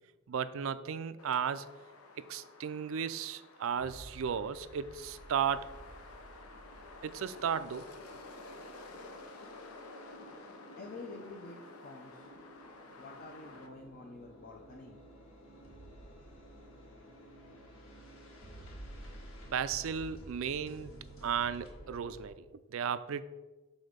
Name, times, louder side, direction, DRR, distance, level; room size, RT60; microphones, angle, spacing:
voice 1, 0.3-1.7 2.3-5.7 7.0-7.8 19.5-20.9 21.2-22.3 22.7-23.2, right 7 dB, 65° right, 13 dB, 0.4 m, -34 dB
sound 1, 1.2-13.7, left 2 dB, 85° left, 0.8 m, -52 dB
sound 2, 3.8-22.3, right 1 dB, 65° left, 1.5 m, -53 dB
voice 2, 10.8-12.3 13.0-15.0, left 3 dB, 45° left, 0 dB, 0.6 m, -48 dB
6.4 x 4.2 x 5.1 m, 1.2 s
head